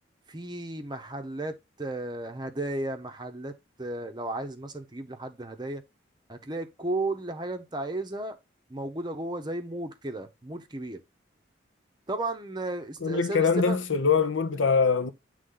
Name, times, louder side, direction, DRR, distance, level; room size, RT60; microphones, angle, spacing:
voice 1, 0.3-3.5 3.8-5.8 6.3-8.4 8.7-11.0 12.1-13.8, right 2 dB, 20° right, 0.7 m, -34 dB
voice 2, 13.0-15.1, left 5 dB, 70° left, 0.8 m, -23 dB
8.1 x 3.3 x 3.8 m
head